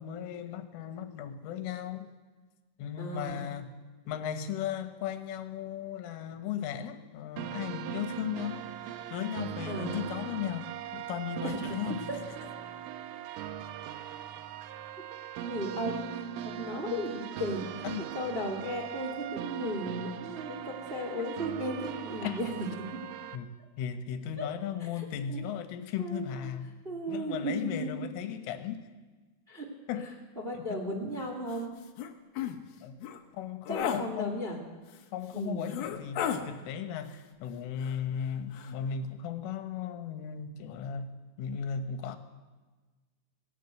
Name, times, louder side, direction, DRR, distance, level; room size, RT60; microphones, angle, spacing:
voice 1, 0.0-2.1 2.8-3.7 4.1-12.1 17.8-18.1 21.2-21.3 22.2-22.4 23.3-26.8 27.1-28.9 29.9-30.1 30.5-30.8 32.8-33.0 33.3-34.5 35.1-41.1 41.4-42.2, left 8 dB, 85° left, 9 dB, 3.8 m, -36 dB
voice 2, 3.0-3.4 9.7-10.1 11.4-11.8 12.1-12.2 15.4-17.7 18.1-22.9 24.4-24.5 25.3-25.4 26.0-26.3 26.8-27.9 29.5-29.7 29.9-30.0 30.4-31.8 33.7-34.6 35.3-35.8, equal, 15° right, 0 dB, 1.9 m, -35 dB
sound 1, 7.4-23.4, right 10 dB, 85° right, 3.6 m, -40 dB
sound 2, 31.5-31.6 32.0-32.1 32.3-32.6 33.0-33.2 33.7-34.0 34.9-35.0 35.6-36.4 37.8-38.2 38.5-38.7, left 9 dB, 65° left, 2.5 m, -33 dB
18.5 x 18.0 x 7.9 m, 1.3 s
omnidirectional pair, 5.6 m